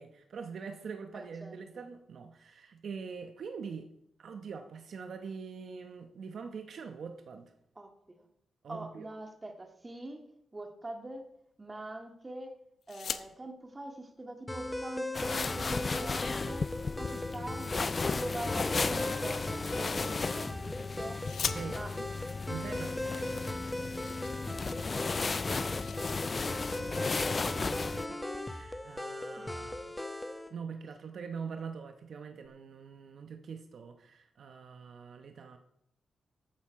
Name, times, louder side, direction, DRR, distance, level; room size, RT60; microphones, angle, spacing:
voice 1, 0.0-3.9 4.2-7.5 8.6-9.1 21.4-22.1 22.5-23.5 26.3-29.8 30.5-35.6, right 5 dB, 65° right, 6 dB, 1.0 m, -44 dB
voice 2, 1.1-1.8 7.8-8.3 8.7-10.3 10.5-11.3 11.6-12.6 12.9-16.7 17.0-21.2 21.7-22.0 24.5-25.0 29.4-29.9, right 1 dB, 25° right, 4 dB, 1.9 m, -44 dB
sound 1, 12.8-13.3 14.6-14.7 15.0-16.4 17.5-18.3 19.6-20.6 21.2-22.1 22.9-23.0 23.3-23.4 23.7-25.0 25.3-26.1 26.5-26.7 27.1-27.5, left 7 dB, 70° left, 0.7 m, -42 dB
sound 2, 14.5-30.5, left 1 dB, 10° left, 1.0 m, -38 dB
sound 3, 15.1-28.1, left 4 dB, 40° left, 0.3 m, -35 dB
13.5 x 8.7 x 4.7 m, 0.79 s
cardioid pair, 70°, 0 cm